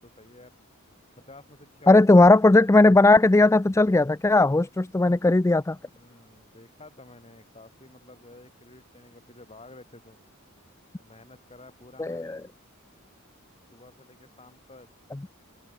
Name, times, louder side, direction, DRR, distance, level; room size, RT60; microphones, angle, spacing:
voice 1, 0.0-0.5 1.3-2.7 5.9-10.2 11.0-12.5 13.7-14.9, left 2 dB, 30° left, 6.2 m, -51 dB
voice 2, 1.9-5.8 12.0-12.4, left 2 dB, 15° left, 0.4 m, -17 dB
head